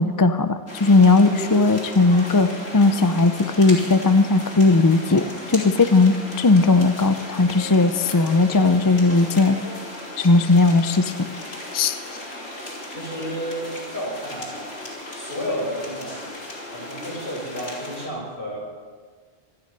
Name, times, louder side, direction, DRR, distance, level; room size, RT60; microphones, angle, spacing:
voice 1, 0.0-2.5 2.7-9.6 10.2-11.1 11.7-12.0, left 3 dB, 25° left, 9 dB, 0.5 m, -17 dB
sound 1, 0.7-18.1, left 1 dB, 85° left, 3.6 m, -36 dB
voice 2, 1.9-2.3 12.9-13.7 13.9-14.7 15.1-16.3 16.7-18.6, equal, 60° left, -4 dB, 6.3 m, -31 dB
25.0 x 9.7 x 5.4 m, 1.5 s
omnidirectional pair, 1.1 m